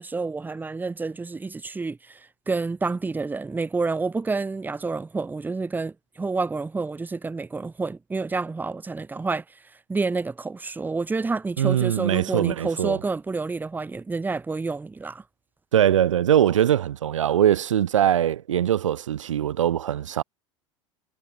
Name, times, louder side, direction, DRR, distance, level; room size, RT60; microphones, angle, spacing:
voice 1, 0.0-9.6 9.9-15.2, right 4 dB, 10° right, 0.7 m, -29 dB
voice 2, 11.6-13.0 15.7-20.2, right 10 dB, 80° right, 0.5 m, -22 dB
figure-of-eight pair, 75°, 16 cm